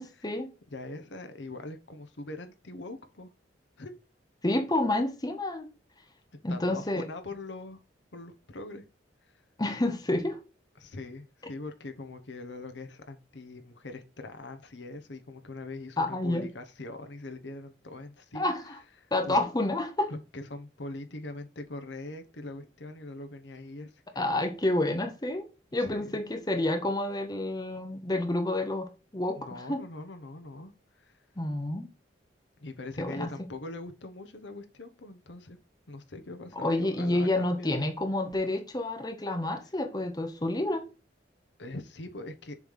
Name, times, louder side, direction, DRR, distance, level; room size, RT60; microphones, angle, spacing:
voice 1, 0.0-0.5 4.4-5.7 6.4-7.1 9.6-10.4 16.0-16.5 18.3-18.7 19.1-20.1 24.2-29.8 31.4-31.9 33.0-33.3 36.6-40.8, left 1 dB, 20° left, 0.8 m, -29 dB
voice 2, 0.7-3.3 3.8-3.9 6.5-7.8 8.1-8.8 9.2-9.4 10.8-18.5 19.0-19.4 20.1-24.0 25.8-26.2 29.4-31.2 32.6-35.6 35.9-37.8 41.6-42.6, left 2 dB, 80° left, 1.0 m, -42 dB
7.1 x 3.3 x 5.5 m
head